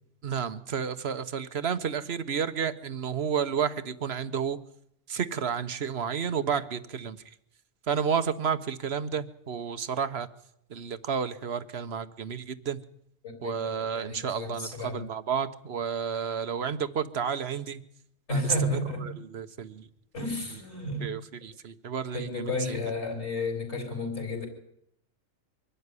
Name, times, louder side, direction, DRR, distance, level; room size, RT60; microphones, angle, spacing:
voice 1, 0.2-4.6 5.1-7.2 7.9-10.3 10.7-12.8 13.4-14.7 14.9-17.8 18.3-18.4 19.3-19.8 21.0-22.8, right 7 dB, 55° right, 14 dB, 1.2 m, -31 dB
voice 2, 13.2-15.1 18.3-19.1 20.1-21.1 22.1-24.5, left 2 dB, 55° left, 4 dB, 4.6 m, -32 dB
24.0 x 12.5 x 9.7 m, 0.76 s
omnidirectional pair, 1.4 m